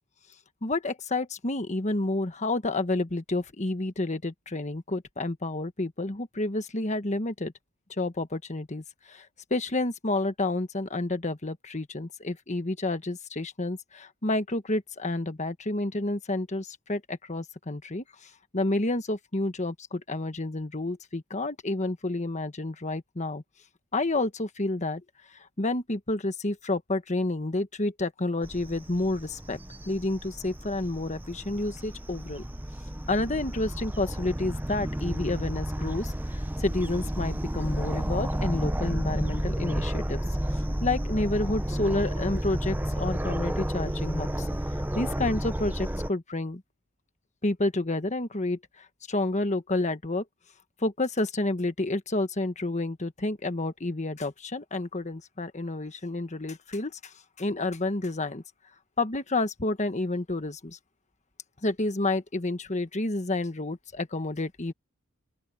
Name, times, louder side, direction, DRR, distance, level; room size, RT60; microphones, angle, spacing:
voice 1, 0.6-7.5 7.9-23.4 23.9-25.0 25.3-29.6 29.9-32.4 33.1-40.2 40.8-44.5 44.9-46.6 47.4-50.2 50.8-58.4 59.0-60.8 61.6-64.7, left 2 dB, 35° left, 1.4 m, -30 dB
sound 1, 28.4-46.1, equal, 10° right, 0.9 m, -31 dB
open air
head